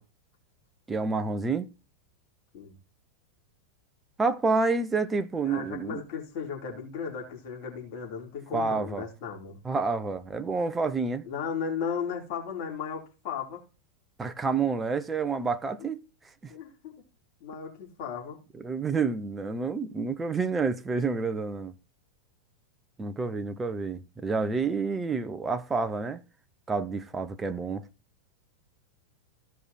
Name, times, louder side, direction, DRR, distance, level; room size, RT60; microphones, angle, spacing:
voice 1, 0.9-1.7 4.2-6.0 8.5-9.0 9.6-11.2 14.2-16.0 16.4-16.5 18.6-21.7 23.0-26.2 26.7-27.8, right 4 dB, 15° right, 0.9 m, -29 dB
voice 2, 5.4-9.6 11.2-13.6 16.5-17.0 17.4-18.4, left 6 dB, 45° left, 3.2 m, -35 dB
15.0 x 5.0 x 4.1 m
figure-of-eight pair, 90°, 0 cm